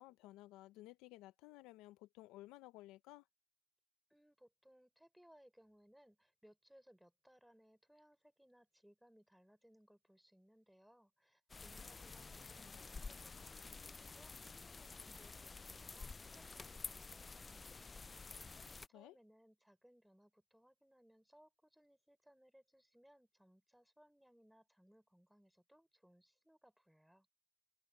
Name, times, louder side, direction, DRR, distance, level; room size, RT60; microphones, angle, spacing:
voice 1, 0.0-3.2 18.9-19.2, left 17 dB, 65° left, 1.1 m, -56 dB
voice 2, 4.1-18.1 18.9-27.3, equal, ahead, 4.1 m, -67 dB
sound 1, 11.5-18.9, left 4 dB, 15° left, 0.3 m, -51 dB
Fixed-wing aircraft airplane, 11.7-17.1, left 9 dB, 40° left, 1.8 m, -69 dB
cardioid pair, 145°, 0 cm